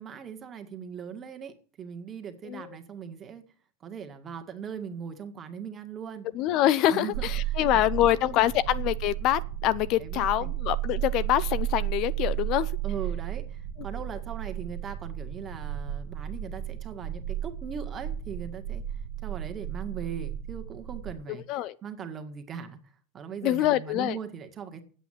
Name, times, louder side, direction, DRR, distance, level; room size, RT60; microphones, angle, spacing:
voice 1, 0.0-3.4 3.8-6.3 6.9-8.5 10.0-10.6 12.8-18.8 19.2-22.8 23.1-24.8, right 7 dB, 25° right, 1.9 m, -40 dB
voice 2, 6.3-12.7 21.3-21.8 23.4-24.2, left 13 dB, 45° left, 0.6 m, -25 dB
sound 1, 7.1-21.1, right 12 dB, 85° right, 1.3 m, -33 dB
9.0 x 8.3 x 9.3 m
supercardioid pair, 145°, 0 cm